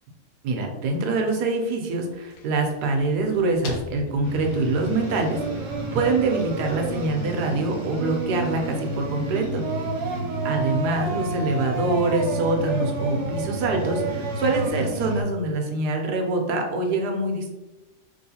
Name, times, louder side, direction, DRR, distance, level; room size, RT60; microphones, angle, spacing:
voice 1, 0.4-9.6 10.4-17.5, right 2 dB, 75° right, 3 dB, 1.1 m, -25 dB
sound 1, 2.1-8.0, left 2 dB, 75° left, 1.1 m, -44 dB
sound 2, 4.2-15.2, right 1 dB, 35° right, 0.8 m, -33 dB
Singing, 4.8-14.7, right 4 dB, 90° right, 1.4 m, -31 dB
3.1 x 3.0 x 2.7 m, 1.0 s
omnidirectional pair, 1.9 m